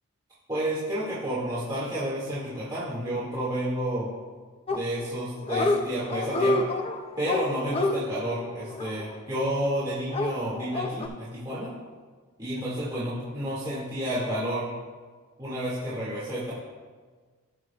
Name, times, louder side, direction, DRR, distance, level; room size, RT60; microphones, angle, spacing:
voice 1, 0.5-4.1 4.7-6.7 7.2-11.7 12.4-14.7 15.4-16.5, equal, 20° right, -10 dB, 2.1 m, -30 dB
Dog, 4.7-5.2 5.4-5.8 6.1-9.5 10.1-11.1, left 2 dB, 25° left, 0.5 m, -28 dB
18.0 x 6.3 x 2.4 m, 1.5 s
head